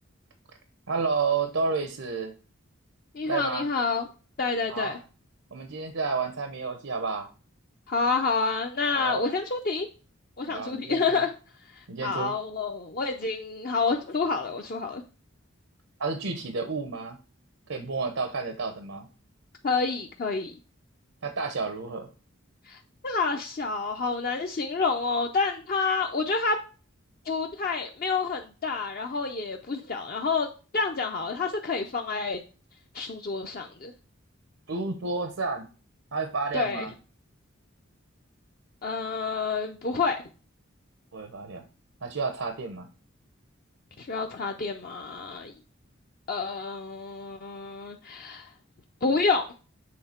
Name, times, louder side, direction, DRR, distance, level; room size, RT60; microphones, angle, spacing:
voice 1, 0.9-2.3 3.3-3.7 4.7-5.0 5.5-7.3 8.9-9.2 10.5-11.2 11.9-12.3 16.0-17.2 17.7-19.1 21.2-22.1 34.7-35.7 36.1-36.9 41.1-41.7 42.0-42.9, right 4 dB, 85° right, 6 dB, 0.8 m, -30 dB
voice 2, 3.1-4.0 4.4-5.0 7.9-9.9 10.4-11.3 11.8-15.0 19.6-20.5 22.7-26.6 27.3-30.5 30.7-32.4 32.9-33.9 36.5-36.9 38.8-40.2 44.0-45.5 46.3-48.5 49.0-49.5, left 4 dB, 45° left, 3 dB, 0.5 m, -28 dB
7.7 x 3.6 x 4.3 m, 0.35 s
head